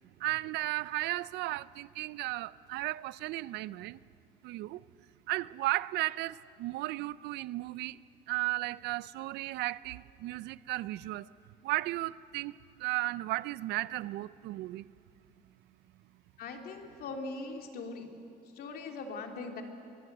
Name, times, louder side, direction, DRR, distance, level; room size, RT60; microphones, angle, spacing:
voice 1, 0.2-4.0 4.4-4.8 5.3-8.0 8.3-11.3 11.6-14.9, right 18 dB, 85° right, 19 dB, 0.5 m, -35 dB
voice 2, 16.4-18.1 18.5-19.6, left 3 dB, 65° left, 3 dB, 2.9 m, -40 dB
24.0 x 21.0 x 7.9 m, 2.6 s
cardioid pair, 110°, 17 cm